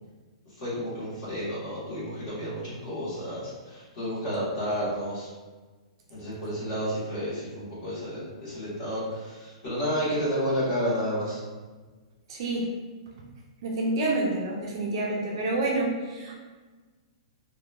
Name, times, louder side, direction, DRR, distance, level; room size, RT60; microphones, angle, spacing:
voice 1, 0.6-5.3 6.1-11.4, equal, 30° left, -10 dB, 1.1 m, -31 dB
voice 2, 12.3-12.7 13.6-16.4, right 2 dB, 45° right, -2 dB, 0.4 m, -28 dB
2.9 x 2.1 x 2.2 m, 1.3 s
hypercardioid pair, 170°, 4 cm